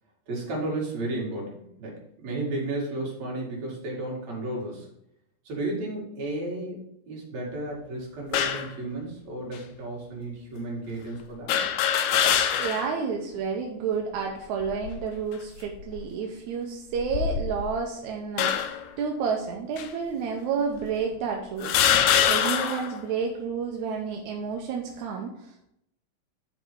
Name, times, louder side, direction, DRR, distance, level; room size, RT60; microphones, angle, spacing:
voice 1, 0.3-4.9 5.4-11.5, right 2 dB, 55° right, -2 dB, 3.3 m, -33 dB
sound 1, 8.3-8.7 9.6-9.7 11.5-13.0 13.4-13.5 14.6-15.1 15.7-16.0 17.0-17.8 18.4-18.9 19.8-19.9 20.8-20.9 21.6-22.9, left 9 dB, 75° left, 1.8 m, -24 dB
voice 2, 12.6-22.0 22.3-25.7, right 6 dB, 70° right, 1 dB, 2.0 m, -30 dB
10.5 x 4.6 x 4.6 m, 0.78 s
omnidirectional pair, 3.8 m